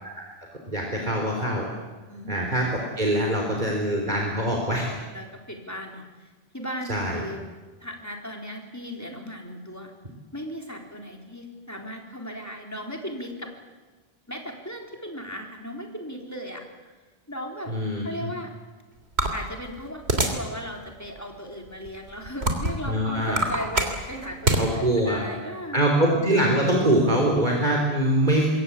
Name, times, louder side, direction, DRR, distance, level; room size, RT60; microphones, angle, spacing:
voice 1, 0.7-1.7 2.3-2.7 3.0-4.9 6.9-7.2 17.7-18.3 22.8-23.4 24.5-25.3 25.7-28.5, right 1 dB, 45° right, 0 dB, 4.0 m, -23 dB
voice 2, 5.1-7.4 7.8-9.9 10.3-13.5 14.3-16.7 17.3-17.7 18.0-18.5 19.3-25.8, equal, 15° left, 2 dB, 4.1 m, -37 dB
sound 1, 19.2-20.5 21.0-21.2 21.9-22.9 23.2-24.6, right 1 dB, 80° right, 3.4 m, -24 dB
26.5 x 21.5 x 8.5 m, 1.3 s
omnidirectional pair, 1.1 m